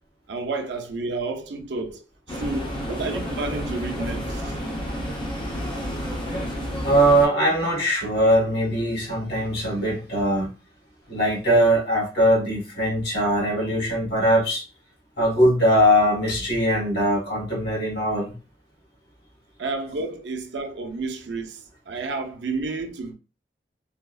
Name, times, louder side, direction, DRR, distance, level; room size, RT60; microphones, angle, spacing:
voice 1, 0.3-4.5 19.6-23.1, right 3 dB, 85° right, 0.5 m, -31 dB
sound 1, 2.3-7.3, equal, 30° left, 0.7 m, -30 dB
voice 2, 6.8-10.5 11.1-14.6 15.2-18.3, equal, 65° left, 1.5 m, -21 dB
3.4 x 2.0 x 2.3 m
head